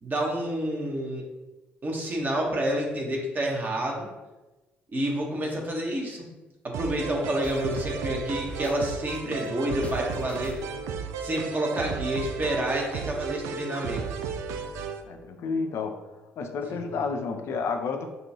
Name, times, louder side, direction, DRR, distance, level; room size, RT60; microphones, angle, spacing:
voice 1, 0.0-1.2 1.8-4.1 4.9-6.3 6.6-10.6 11.2-14.0 16.7-16.8, right 1 dB, 35° right, 0 dB, 1.2 m, -29 dB
sound 1, 6.7-15.0, right 6 dB, 65° right, 0.4 m, -34 dB
sound 2, 7.4-10.9, left 1 dB, 25° left, 0.7 m, -43 dB
voice 2, 15.0-16.0 16.4-18.1, left 4 dB, 55° left, 5 dB, 0.5 m, -30 dB
5.3 x 2.5 x 2.8 m, 1.1 s
figure-of-eight pair, 50°, 5 cm